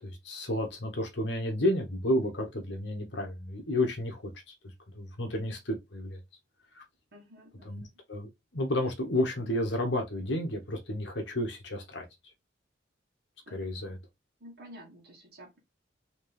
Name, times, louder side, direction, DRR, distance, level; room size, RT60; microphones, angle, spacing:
voice 1, 0.0-4.3 4.9-6.2 6.7-6.8 7.6-7.8 8.1-12.1 13.5-14.0, left 1 dB, 70° left, 1.2 m, -31 dB
voice 2, 7.1-7.9 13.5-14.0 14.4-15.6, equal, 60° right, 1.4 m, -51 dB
4.2 x 3.0 x 3.4 m
head